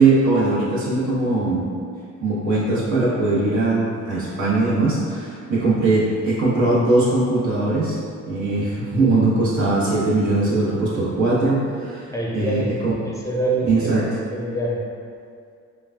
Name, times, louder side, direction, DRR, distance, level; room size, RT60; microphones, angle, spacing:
voice 1, 0.0-1.7 2.2-8.0 8.2-12.9 13.6-14.1, right 2 dB, 75° right, -9 dB, 1.4 m, -20 dB
voice 2, 12.1-12.7 13.0-14.8, right 2 dB, 10° left, -4 dB, 0.5 m, -26 dB
5.3 x 2.4 x 2.4 m, 2.3 s
cardioid pair, 90°, 30 cm